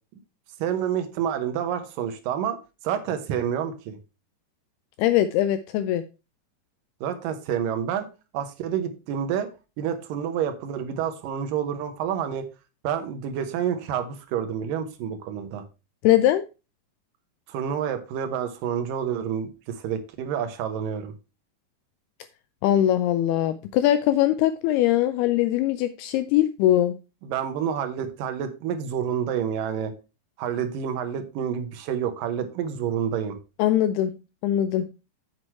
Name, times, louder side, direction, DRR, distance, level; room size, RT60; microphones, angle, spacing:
voice 1, 0.6-2.6 2.8-4.0 7.0-8.1 8.3-9.5 9.8-12.5 12.8-15.6 17.5-21.1 27.2-29.9 30.4-33.4, right 8 dB, 75° right, 2.1 m, -28 dB
voice 2, 5.0-6.0 16.0-16.4 22.6-26.9 33.6-34.1 34.4-34.9, left 12 dB, 85° left, 2.2 m, -21 dB
7.5 x 6.3 x 4.5 m
omnidirectional pair, 5.1 m